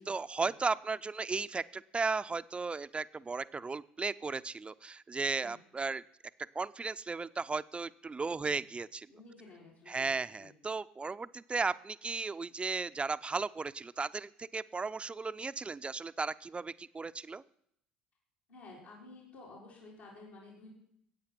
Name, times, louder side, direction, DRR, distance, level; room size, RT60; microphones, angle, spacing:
voice 1, 0.0-6.0 6.5-9.1 9.9-17.4, right 4 dB, 25° right, 14 dB, 0.6 m, -35 dB
voice 2, 9.1-10.1 10.4-10.5 18.5-20.7, left 3 dB, 75° left, -5 dB, 4.3 m, -53 dB
14.0 x 8.6 x 6.0 m, 0.70 s
hypercardioid pair, 60°, 5 cm